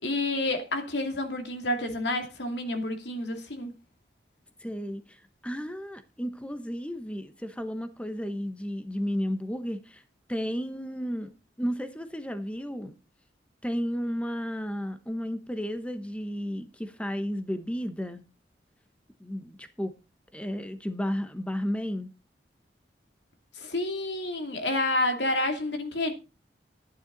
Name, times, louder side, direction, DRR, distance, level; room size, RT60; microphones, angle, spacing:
voice 1, 0.0-3.7 23.6-26.1, left 2 dB, 85° left, 2.6 m, -29 dB
voice 2, 4.6-10.0 10.3-11.3 11.6-12.9 13.6-18.2 19.2-20.0 20.3-22.1, equal, 5° left, 0.9 m, -33 dB
12.0 x 10.0 x 3.9 m
head